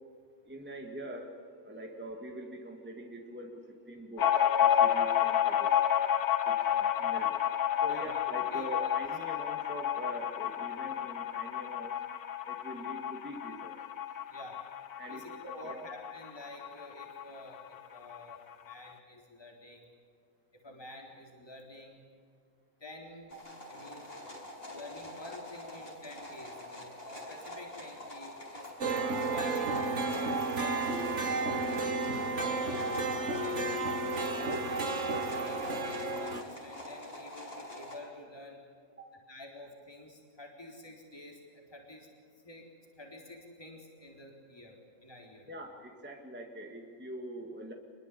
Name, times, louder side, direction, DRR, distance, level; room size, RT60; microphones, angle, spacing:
voice 1, 0.5-4.3 4.6-5.7 6.5-7.4 7.8-11.9 12.5-13.8 15.0-15.8 23.3-23.5 27.1-27.2 39.0-39.1 45.5-47.7, equal, 5° right, 2 dB, 2.3 m, -44 dB
sound 1, 4.2-17.3 17.6-17.7 18.0-18.7, left 10 dB, 80° left, 1.7 m, -30 dB
voice 2, 7.9-8.2 8.5-8.9 14.3-14.6 15.1-19.9 20.5-22.0 22.8-23.3 23.7-24.1 24.7-28.7 29.3-31.2 31.5-32.9 33.2-33.8 34.3-38.6 39.3-42.1 42.4-42.7 43.0-45.5, left 1 dB, 15° left, 0 dB, 4.0 m, -49 dB
sound 2, 23.3-38.0, left 1 dB, 35° left, 6.2 m, -45 dB
sound 3, 28.8-36.4, right 3 dB, 50° right, 2.1 m, -32 dB
27.0 x 22.0 x 8.5 m, 2.1 s
omnidirectional pair, 1.6 m